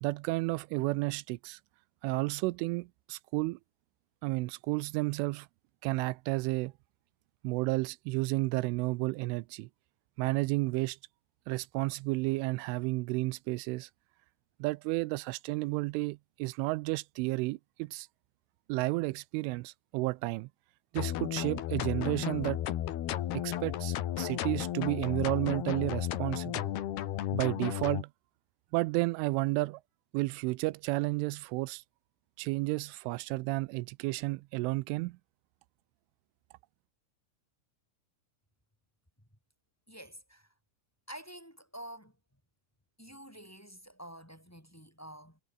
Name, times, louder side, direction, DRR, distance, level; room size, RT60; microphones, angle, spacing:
voice 1, 0.0-1.6 2.0-3.6 4.2-5.5 5.8-6.7 7.4-9.7 10.2-11.0 11.5-13.9 14.6-18.1 18.7-20.5 20.9-22.6 23.3-26.7 27.3-28.1 28.7-29.8 30.1-31.8 32.4-35.2, right 23 dB, 90° right, 3.1 m, -32 dB
sound 1, 21.0-28.0, left 12 dB, 65° left, 3.3 m, -34 dB
voice 2, 39.9-40.5 41.1-42.1 43.0-45.4, right 1 dB, 5° left, 5.6 m, -48 dB
omnidirectional pair, 5.5 m